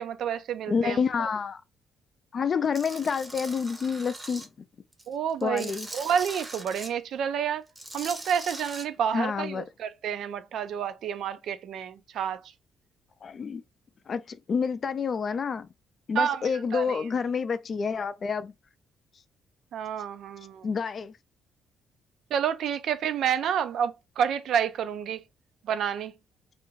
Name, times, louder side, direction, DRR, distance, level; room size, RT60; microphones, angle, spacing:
voice 1, 0.0-1.0 5.1-7.6 7.9-12.4 16.2-17.0 19.7-20.7 22.3-25.2 25.6-26.1, right 8 dB, 75° right, 0.3 m, -29 dB
voice 2, 0.7-1.6 2.3-4.5 5.4-5.9 9.1-9.6 13.2-13.6 14.1-15.7 16.1-18.5 20.6-21.2, left 6 dB, 45° left, 0.3 m, -28 dB
Tools, 2.7-4.5 4.9-6.9 7.7-8.8, right 2 dB, 20° right, 0.7 m, -40 dB
2.4 x 2.2 x 3.0 m
cardioid pair, 90°, 0 cm